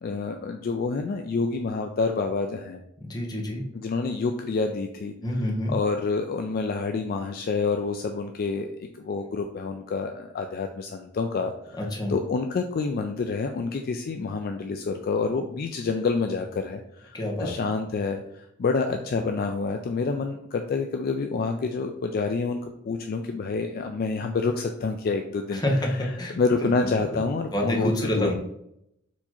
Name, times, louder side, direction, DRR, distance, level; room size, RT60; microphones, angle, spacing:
voice 1, 0.0-2.8 3.7-5.1 5.7-11.8 12.1-28.3, left 4 dB, 45° left, 5 dB, 0.3 m, -28 dB
voice 2, 3.0-3.6 5.2-5.7 11.8-12.1 17.1-17.5 25.5-27.0 27.5-28.3, left 1 dB, 20° left, -1 dB, 0.9 m, -28 dB
4.5 x 2.8 x 4.2 m, 0.77 s
head